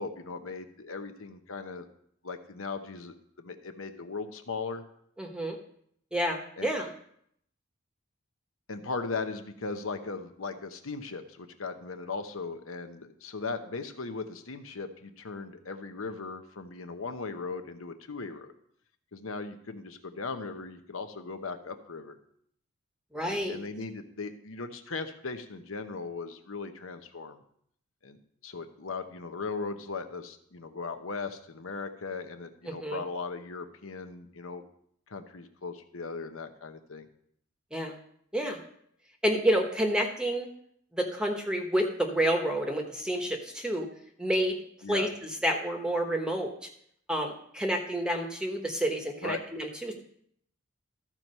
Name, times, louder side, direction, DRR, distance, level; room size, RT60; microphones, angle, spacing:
voice 1, 0.0-1.9 2.2-4.8 6.6-6.7 8.7-18.5 19.1-22.2 23.2-27.4 28.0-28.2 28.4-34.6 35.1-37.1 44.8-45.1 49.2-49.4, left 4 dB, 75° left, 8 dB, 0.9 m, -38 dB
voice 2, 5.2-5.6 6.1-6.9 23.1-23.6 32.7-33.0 37.7-38.0 38.3-38.6 39.2-40.5 40.9-43.9 44.2-44.6 44.9-46.5 47.1-49.9, right 1 dB, 5° right, 2 dB, 1.0 m, -29 dB
13.5 x 4.6 x 5.5 m, 0.68 s
head